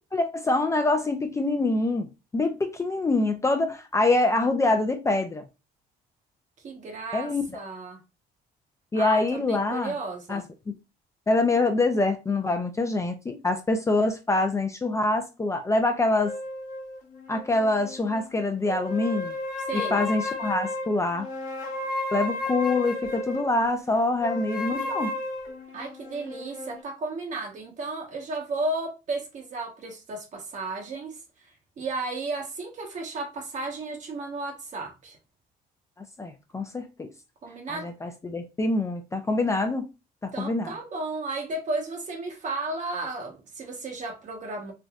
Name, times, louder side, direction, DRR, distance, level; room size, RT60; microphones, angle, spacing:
voice 1, 0.1-2.1 2.3-5.4 7.1-7.6 8.9-9.9 10.3-10.7 11.3-16.3 17.3-19.3 19.7-21.3 22.1-25.1 36.0-37.1 37.7-39.9 40.2-40.7, left 2 dB, 15° left, 0.4 m, -25 dB
voice 2, 6.6-8.0 8.9-10.5 19.7-20.0 25.7-31.2 31.8-35.2 37.4-37.9 40.3-44.7, right 2 dB, 45° right, 1.0 m, -33 dB
sound 1, 16.2-18.3 18.7-23.5 24.2-26.8, left 2 dB, 50° left, 1.0 m, -33 dB
3.3 x 2.6 x 2.3 m
cardioid pair, 110°, 17 cm